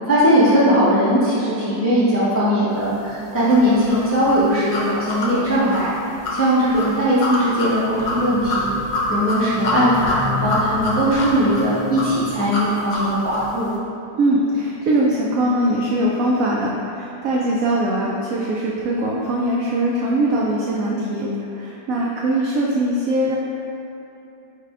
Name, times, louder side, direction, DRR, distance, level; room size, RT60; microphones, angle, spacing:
voice 1, 0.1-5.9 6.3-8.7 9.1-13.7, equal, 20° left, -11 dB, 0.4 m, -19 dB
sound 1, 3.5-13.6, left 2 dB, 65° left, 1.2 m, -26 dB
voice 2, 14.1-23.4, right 1 dB, 85° right, -4 dB, 0.7 m, -21 dB
4.8 x 2.2 x 4.8 m, 2.9 s
omnidirectional pair, 2.0 m